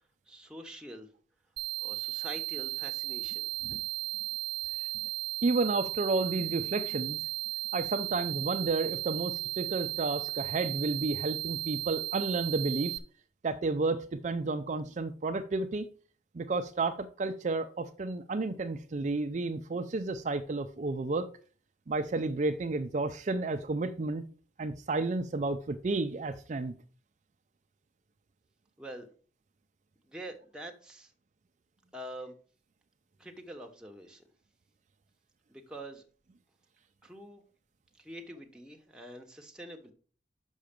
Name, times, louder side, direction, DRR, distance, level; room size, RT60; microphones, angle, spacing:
voice 1, 0.3-1.1 1.8-3.5 28.8-29.1 30.0-31.1 31.9-32.3 33.2-34.2 35.5-36.0 37.0-37.4 38.0-39.9, right 1 dB, 5° right, 1 dB, 1.0 m, -45 dB
sound 1, 1.6-13.0, right 17 dB, 65° right, 0.9 m, -35 dB
voice 2, 5.4-7.2 7.7-13.0 13.4-15.9 16.3-21.3 21.9-24.2 24.6-26.8, right 3 dB, 40° right, 7 dB, 0.4 m, -31 dB
6.3 x 5.7 x 5.1 m, 0.41 s
head